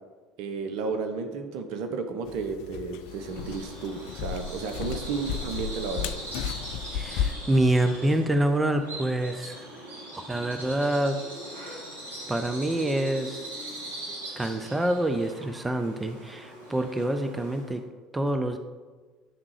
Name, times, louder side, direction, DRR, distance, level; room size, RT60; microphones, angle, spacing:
voice 1, 0.4-6.1, right 4 dB, 65° right, 6 dB, 0.9 m, -33 dB
sound 1, 2.3-7.3, left 8 dB, 65° left, 0.3 m, -34 dB
Bird vocalization bird call bird song, 3.0-17.8, right 1 dB, 85° right, 2.3 m, -41 dB
voice 2, 6.9-9.7 10.3-11.2 12.3-13.5 14.4-17.8 18.1-18.6, right 1 dB, 15° right, 8 dB, 0.6 m, -26 dB
9.4 x 3.6 x 4.9 m, 1.3 s
hypercardioid pair, 70°, 0 cm